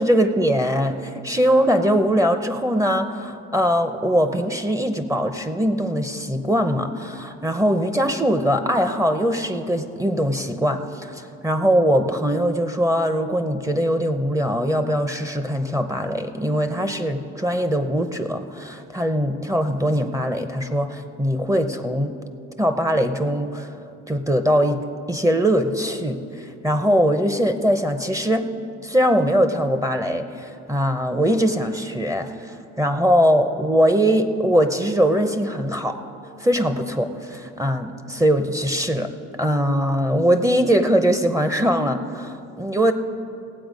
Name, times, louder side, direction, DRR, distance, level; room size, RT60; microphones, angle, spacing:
voice 1, 0.0-22.1 22.6-23.7 24.1-28.5 28.8-36.0 36.4-39.1 39.4-42.9, equal, 10° right, 8 dB, 0.7 m, -21 dB
18.0 x 7.8 x 5.1 m, 2.6 s
cardioid pair, 90°, 30 cm